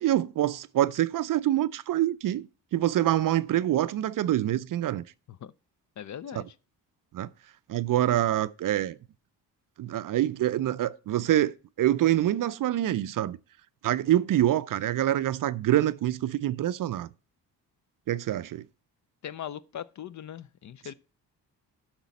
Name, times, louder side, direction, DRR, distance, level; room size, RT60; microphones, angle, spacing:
voice 1, 0.0-2.5 2.7-5.0 6.3-6.4 7.1-7.3 7.7-9.0 9.8-13.4 13.8-17.1 18.1-18.6, right 13 dB, 45° right, 0.5 m, -26 dB
voice 2, 6.0-6.5 19.2-20.9, left 9 dB, 40° left, 0.5 m, -39 dB
10.0 x 6.0 x 4.2 m
hypercardioid pair, 45°, 46 cm